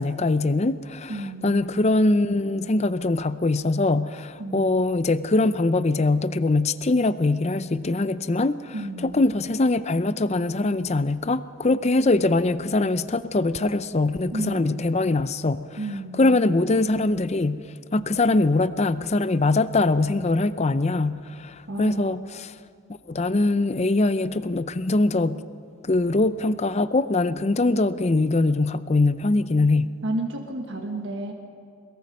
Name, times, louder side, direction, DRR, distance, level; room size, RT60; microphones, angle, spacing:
voice 1, 0.0-8.7 9.0-15.7 16.1-17.6 17.9-22.5 23.1-25.4 25.8-30.0, left 2 dB, 30° left, 14 dB, 0.5 m, -22 dB
voice 2, 1.1-1.7 4.4-4.9 8.7-9.2 14.3-14.9 15.8-16.4 21.7-22.1 30.0-31.3, right 1 dB, 55° right, 2 dB, 1.5 m, -32 dB
22.0 x 21.5 x 5.4 m, 2.3 s
head